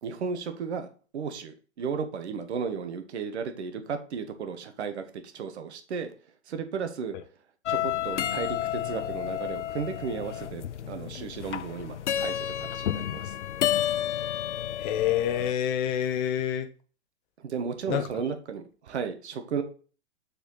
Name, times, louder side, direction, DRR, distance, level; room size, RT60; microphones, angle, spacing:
voice 1, 0.0-5.0 5.3-6.1 6.5-7.2 7.7-13.3 17.4-19.6, right 6 dB, 70° right, 8 dB, 1.4 m, -34 dB
sound 1, 7.7-15.5, left 11 dB, 80° left, 0.5 m, -31 dB
voice 2, 14.8-16.7 17.9-18.0, left 10 dB, 40° left, 9 dB, 0.9 m, -27 dB
7.0 x 4.4 x 3.9 m, 0.38 s
hypercardioid pair, 115°, 35 cm